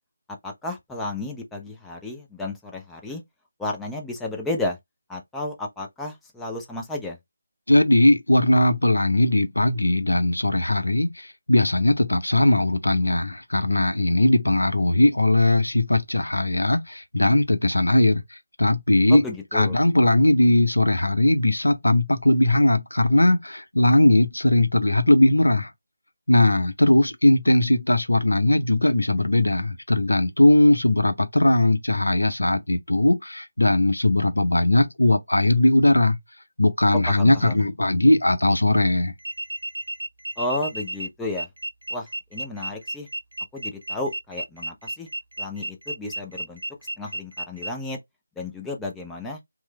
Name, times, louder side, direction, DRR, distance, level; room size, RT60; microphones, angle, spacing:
voice 1, 0.4-3.2 3.6-4.8 5.1-7.2 19.1-19.8 37.1-37.7 40.4-41.5 41.9-43.1 43.5-45.1 45.4-46.6 47.0-48.0 48.4-49.4, left 2 dB, 5° left, 0.4 m, -32 dB
voice 2, 7.7-18.2 18.6-19.2 19.5-25.7 26.3-36.2 36.6-39.1, left 1 dB, 75° left, 0.6 m, -19 dB
sound 1, 39.2-47.7, right 1 dB, 70° right, 0.5 m, -33 dB
3.0 x 2.0 x 3.1 m
figure-of-eight pair, 155°, 0 cm